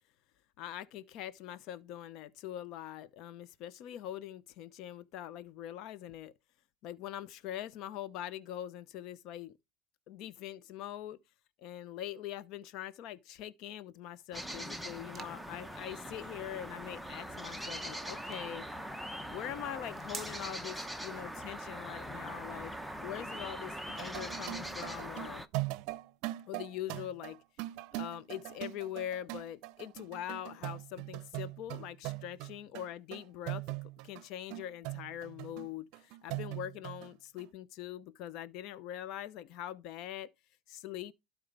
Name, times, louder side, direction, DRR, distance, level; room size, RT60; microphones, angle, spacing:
voice 1, 0.6-6.3 6.8-9.6 10.1-11.2 11.6-18.6 19.3-25.4 26.5-27.4 27.9-33.6 34.0-40.3 40.7-41.1, left 11 dB, 55° left, 0.8 m, -43 dB
sound 1, 14.0-21.2, right 5 dB, 20° right, 1.1 m, -53 dB
sound 2, 14.3-25.5, equal, ahead, 0.7 m, -42 dB
sound 3, 23.9-34.2 34.5-37.1 37.4-37.5, right 19 dB, 60° right, 0.6 m, -41 dB
12.5 x 4.6 x 3.4 m
supercardioid pair, 120°, 0 cm